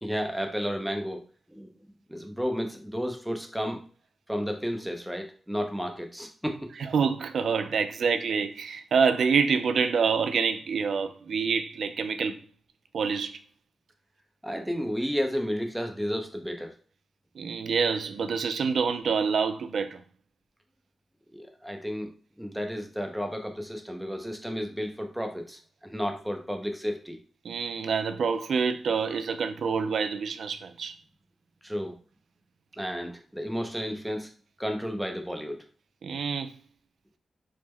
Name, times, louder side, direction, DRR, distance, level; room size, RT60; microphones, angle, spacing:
voice 1, 0.0-1.2 1.5-1.7 2.1-3.8 4.3-6.7 14.4-16.7 21.3-22.1 22.4-27.2 31.6-32.0 32.8-34.3 34.6-35.6, equal, 5° right, 0.6 m, -32 dB
voice 2, 6.8-12.4 12.9-13.4 17.4-20.0 27.4-30.9 36.0-36.5, right 5 dB, 75° right, 0.3 m, -27 dB
3.5 x 2.0 x 3.1 m
cardioid pair, 70°, 0 cm